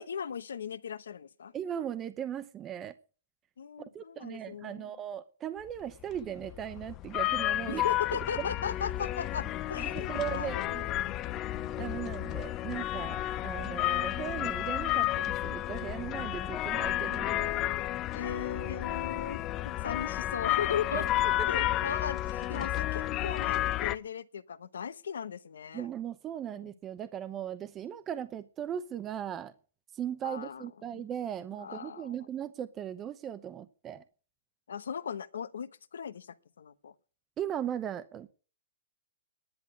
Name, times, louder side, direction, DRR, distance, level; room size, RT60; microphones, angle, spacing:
voice 1, 0.0-1.5 3.6-4.9 7.7-11.2 18.1-21.1 21.5-25.9 26.5-26.6 30.2-31.1 31.5-32.2 34.7-36.9, left 7 dB, 90° left, 1.0 m, -38 dB
voice 2, 1.5-2.9 3.9-7.9 8.4-8.5 9.8-10.9 11.8-17.6 20.9-21.0 25.7-29.5 29.9-34.0 37.4-38.3, right 10 dB, 25° right, 0.7 m, -38 dB
sound 1, 6.1-23.9, left 14 dB, 30° left, 0.6 m, -32 dB
10.5 x 10.0 x 8.4 m
hypercardioid pair, 145°, 0 cm